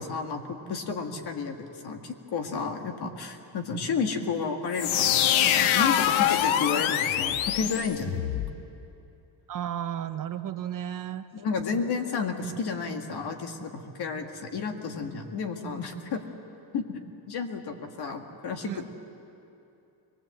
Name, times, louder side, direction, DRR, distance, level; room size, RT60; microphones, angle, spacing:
voice 1, 0.0-8.5 11.3-16.3 16.7-17.0 17.3-18.8, left 5 dB, 55° left, 5 dB, 1.9 m, -32 dB
sound 1, 4.7-8.5, left 10 dB, 85° left, 0.9 m, -24 dB
voice 2, 9.5-11.2 18.6-18.8, right 10 dB, 45° right, 10 dB, 0.7 m, -33 dB
23.5 x 19.0 x 7.8 m, 2.8 s
cardioid pair, 150°, 47 cm